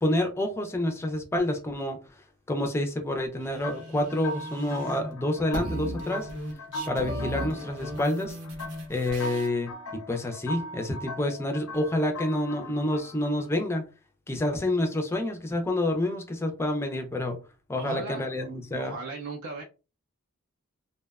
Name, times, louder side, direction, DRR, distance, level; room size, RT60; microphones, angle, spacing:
voice 1, 0.0-2.0 2.5-6.3 6.9-8.4 8.9-13.8 14.3-17.4 17.7-19.0, left 1 dB, 10° left, 0.3 m, -28 dB
sound 1, 3.4-5.1 5.4-9.5, right 1 dB, 90° right, 0.8 m, -37 dB
sound 2, 3.6-13.5, left 1 dB, 90° left, 0.5 m, -40 dB
Piano, 7.1-11.0 11.4-11.8, left 4 dB, 30° right, 0.7 m, -48 dB
voice 2, 17.8-18.3 18.7-19.6, right 3 dB, 70° right, 0.4 m, -37 dB
2.6 x 2.1 x 2.3 m
head